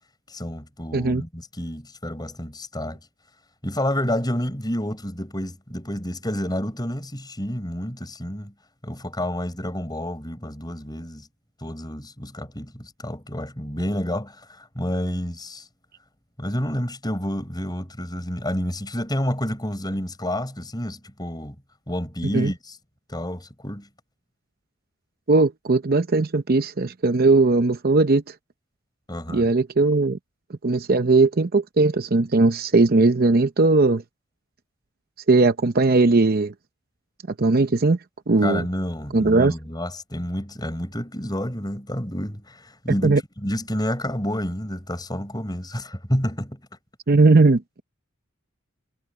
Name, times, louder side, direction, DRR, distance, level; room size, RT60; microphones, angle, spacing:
voice 1, 0.3-3.0 3.6-8.5 8.8-11.3 11.6-15.7 16.4-21.6 21.9-22.8 23.1-23.9 29.1-29.5 38.4-46.6, equal, 20° left, 7.4 m, -29 dB
voice 2, 0.9-1.2 22.3-22.5 25.3-28.2 29.3-30.2 30.6-34.0 35.3-36.5 37.4-38.0 38.3-38.6 39.1-39.5 43.0-43.2 47.1-47.8, right 3 dB, 45° right, 0.7 m, -18 dB
head